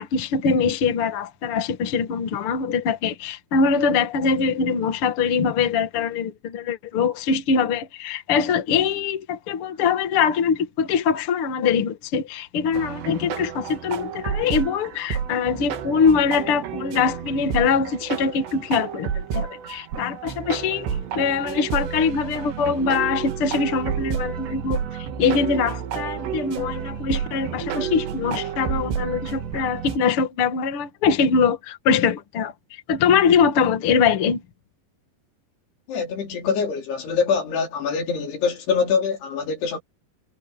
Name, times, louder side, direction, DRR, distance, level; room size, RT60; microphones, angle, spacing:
voice 1, 0.0-20.9 21.1-24.8 25.2-34.4, left 5 dB, 45° left, 1.9 m, -23 dB
sound 1, 12.7-30.0, right 8 dB, 90° right, 4.2 m, -30 dB
voice 2, 35.9-39.8, left 5 dB, 75° left, 5.5 m, -24 dB
omnidirectional pair, 4.8 m